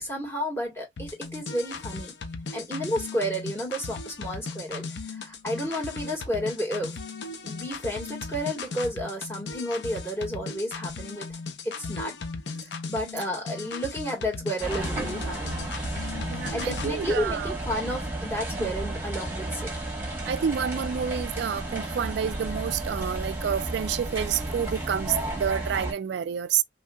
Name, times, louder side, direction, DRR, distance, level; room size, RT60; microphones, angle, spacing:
voice 1, 0.0-2.1 2.5-7.0 7.4-12.2 12.9-15.6 16.5-19.8, equal, 15° left, 1.6 m, -31 dB
sound 1, 1.0-16.9, left 4 dB, 65° left, 0.6 m, -37 dB
sound 2, 14.6-25.9, right 1 dB, 15° right, 1.4 m, -33 dB
voice 2, 16.3-17.6 18.6-18.7 20.2-26.6, right 8 dB, 65° right, 0.3 m, -29 dB
3.2 x 2.7 x 2.2 m
head